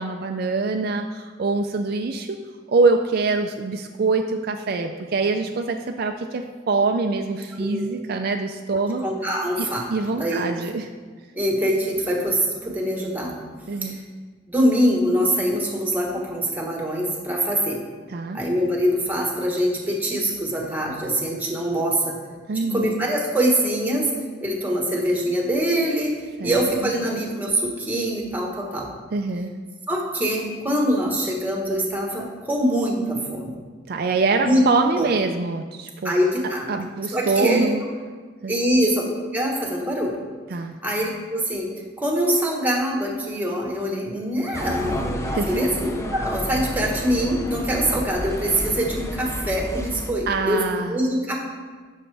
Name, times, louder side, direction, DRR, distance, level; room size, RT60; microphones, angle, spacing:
voice 1, 0.0-2.4 2.7-9.0 9.6-10.9 13.7-14.0 18.1-18.4 22.5-22.9 26.4-26.5 26.8-26.9 29.1-29.5 33.9-36.1 36.7-37.8 38.4-38.5 40.5-40.7 45.3-45.6 50.3-51.0, right 3 dB, 50° right, 4 dB, 0.4 m, -24 dB
voice 2, 9.0-9.9 10.2-10.4 11.3-13.4 13.8-14.0 14.5-17.8 18.3-22.2 22.5-24.1 24.4-26.1 26.4-28.9 29.9-33.6 34.4-34.6 34.9-35.1 36.0-36.7 37.1-37.7 38.5-39.0 39.3-40.2 40.8-41.7 42.0-51.4, equal, 10° right, -1 dB, 1.3 m, -23 dB
sound 1, 44.5-50.1, equal, 15° left, 0.6 m, -31 dB
11.0 x 6.4 x 3.4 m, 1.5 s
head